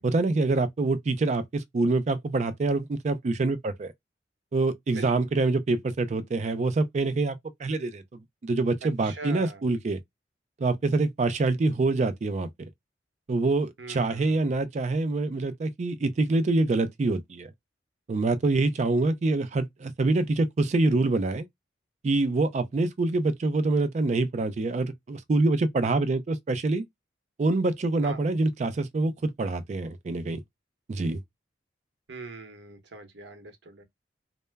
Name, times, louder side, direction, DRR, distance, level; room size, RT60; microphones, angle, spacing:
voice 1, 0.0-3.9 4.5-10.0 10.6-12.5 13.3-17.5 18.1-21.5 22.0-26.8 27.4-30.4 30.9-31.2, right 3 dB, 40° right, 0.3 m, -25 dB
voice 2, 9.0-9.6 13.8-14.6 28.0-28.2 32.1-33.8, right 3 dB, 75° right, 0.8 m, -42 dB
2.1 x 2.0 x 3.3 m
head